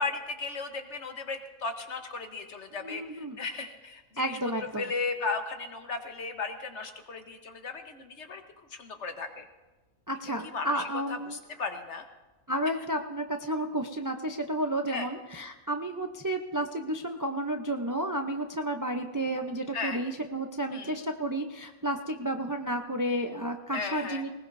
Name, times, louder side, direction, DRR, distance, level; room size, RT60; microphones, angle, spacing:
voice 1, 0.0-4.4 4.8-8.4 8.7-9.4 10.2-12.1 14.9-15.1 19.7-20.0 20.7-21.0 23.7-24.2, left 4 dB, 55° left, 6 dB, 1.4 m, -36 dB
voice 2, 2.8-3.4 4.2-4.8 10.1-11.4 12.5-24.3, right 1 dB, 25° right, 4 dB, 0.4 m, -32 dB
20.0 x 19.5 x 2.7 m, 1.2 s
omnidirectional pair, 1.5 m